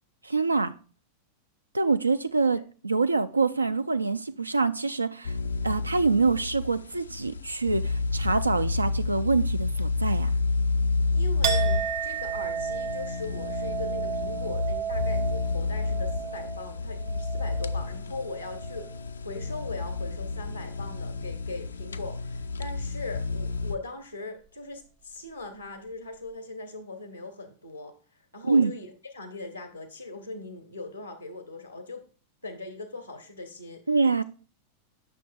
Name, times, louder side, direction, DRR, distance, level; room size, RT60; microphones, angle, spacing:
voice 1, 0.2-0.7 1.7-5.3 5.6-10.3 28.4-28.7 33.9-34.2, right 4 dB, 80° right, 0.3 m, -25 dB
sound 1, 5.2-23.7, left 3 dB, 75° left, 0.3 m, -30 dB
voice 2, 11.1-18.9 19.2-27.9 28.3-32.0 32.4-33.8, left 2 dB, 90° left, 0.9 m, -40 dB
Chink clink, 11.4-19.1 19.5-20.1, right 7 dB, 45° right, 0.8 m, -33 dB
9.0 x 6.3 x 2.3 m
figure-of-eight pair, 90°, 0 cm